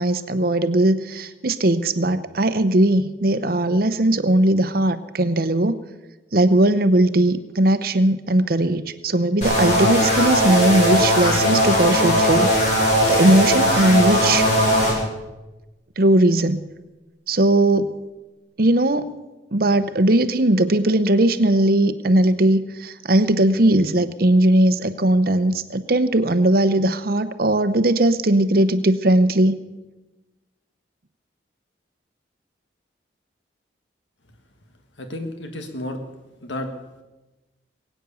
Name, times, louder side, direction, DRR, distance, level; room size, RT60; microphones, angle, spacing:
voice 1, 0.0-5.8 6.3-12.5 13.1-14.5 16.0-16.6 17.3-17.9 18.6-19.1 19.5-29.6, right 1 dB, 50° right, 12 dB, 0.8 m, -18 dB
sound 1, 9.4-14.9, equal, 40° left, 6.2 m, -19 dB
voice 2, 35.0-36.0 36.4-36.7, left 1 dB, 80° left, 6 dB, 1.5 m, -31 dB
21.5 x 9.3 x 7.0 m, 1.1 s
head